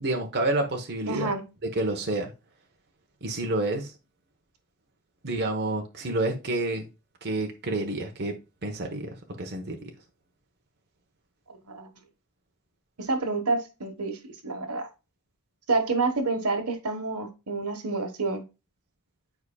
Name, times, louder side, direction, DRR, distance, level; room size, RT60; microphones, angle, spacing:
voice 1, 0.0-1.3 1.6-2.3 3.2-3.9 5.2-6.9 7.2-9.1 9.4-9.9, right 2 dB, 50° right, 1.0 m, -29 dB
voice 2, 1.1-1.4 11.5-11.9 13.0-14.9 15.7-18.4, right 3 dB, 80° right, 1.2 m, -28 dB
9.4 x 4.8 x 2.3 m
head